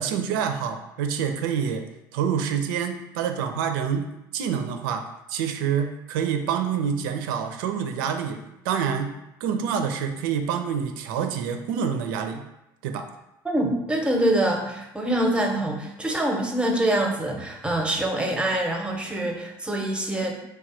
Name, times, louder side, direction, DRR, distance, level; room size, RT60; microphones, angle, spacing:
voice 1, 0.0-1.8 2.1-12.4 12.8-13.1, right 7 dB, 70° right, 6 dB, 0.4 m, -27 dB
voice 2, 13.4-20.4, right 1 dB, 10° right, 2 dB, 0.7 m, -25 dB
3.1 x 2.2 x 4.2 m, 0.90 s
hypercardioid pair, 65°, 11 cm